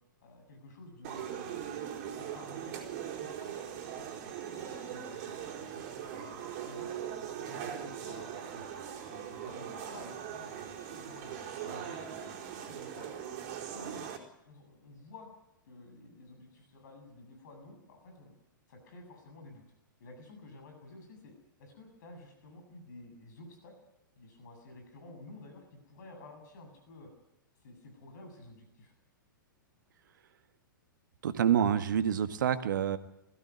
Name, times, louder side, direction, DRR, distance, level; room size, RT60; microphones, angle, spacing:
voice 1, 0.2-3.6 3.8-6.9 7.5-8.8 9.1-13.1 13.7-14.1 14.4-15.3 15.7-18.3 18.7-19.6 20.0-21.3 21.6-23.7 24.2-27.1 27.6-28.9, left 2 dB, 55° left, 4 dB, 7.7 m, -52 dB
sound 1, 1.0-14.2, right 9 dB, 45° right, 4.2 m, -40 dB
voice 2, 31.2-33.0, right 9 dB, 65° right, 11 dB, 1.7 m, -27 dB
21.5 x 16.0 x 9.6 m, 0.84 s
figure-of-eight pair, 110°, 11 cm